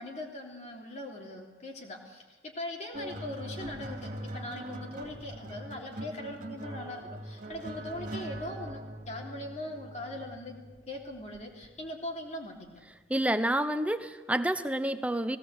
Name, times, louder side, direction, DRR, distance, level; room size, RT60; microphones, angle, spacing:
voice 1, 0.0-10.6 10.9-12.8, left 1 dB, 35° left, 0 dB, 3.2 m, -41 dB
sound 1, 2.9-11.7 12.6-12.9, right 1 dB, 45° right, 2.5 m, -42 dB
voice 2, 13.1-15.4, right 1 dB, 5° right, 10 dB, 0.8 m, -28 dB
18.5 x 17.5 x 8.1 m, 1.3 s
head